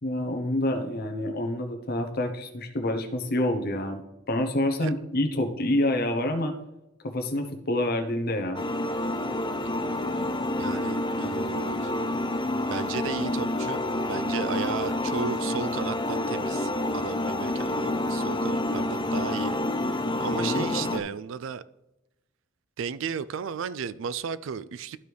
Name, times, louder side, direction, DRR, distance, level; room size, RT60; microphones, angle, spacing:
voice 1, 0.0-4.0 4.3-6.5 7.0-8.6 20.2-20.9, left 1 dB, 50° left, 0.9 m, -27 dB
sound 1, 8.5-21.0, left 1 dB, 25° left, 0.6 m, -28 dB
voice 2, 10.6-11.9 12.6-19.6 20.2-21.6 22.8-25.0, right 6 dB, 70° right, 0.4 m, -34 dB
12.5 x 4.7 x 3.4 m
head